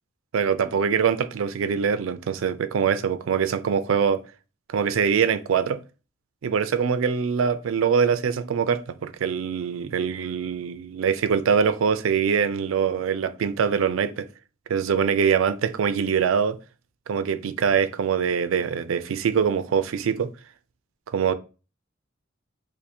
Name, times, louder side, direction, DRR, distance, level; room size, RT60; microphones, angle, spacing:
voice 1, 0.3-4.2 4.7-5.8 6.4-14.3 14.7-16.6 17.1-20.3 21.1-21.3, right 6 dB, 90° right, 0.4 m, -23 dB
2.6 x 2.6 x 4.2 m
head